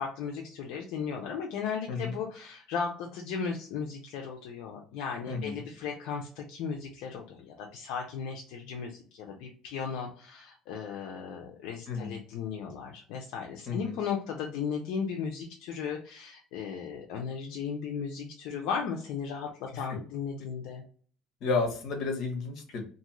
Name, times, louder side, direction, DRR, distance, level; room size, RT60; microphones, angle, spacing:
voice 1, 0.0-20.8, left 6 dB, 75° left, 1 dB, 0.5 m, -36 dB
voice 2, 5.3-5.6 11.9-12.2 13.7-14.0 19.7-19.8 21.4-22.8, left 4 dB, 60° left, 4 dB, 0.9 m, -32 dB
2.6 x 2.4 x 3.0 m, 0.44 s
cardioid pair, 130°, 0 cm